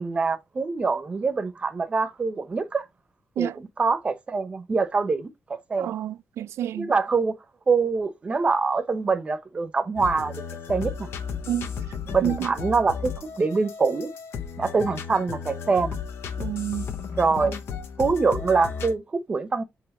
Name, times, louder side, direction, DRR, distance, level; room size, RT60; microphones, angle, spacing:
voice 1, 0.0-2.8 3.4-5.9 6.7-7.4 7.7-10.4 10.7-11.1 12.1-14.1 14.6-16.0 17.2-17.6 18.0-19.6, right 4 dB, 25° right, 0.9 m, -24 dB
voice 2, 5.8-6.9 11.5-11.7 12.2-12.5 16.4-16.9, right 10 dB, 85° right, 0.3 m, -29 dB
sound 1, 10.0-18.9, left 6 dB, 65° left, 0.9 m, -34 dB
8.0 x 3.2 x 4.3 m
wide cardioid pair, 175°, 5 cm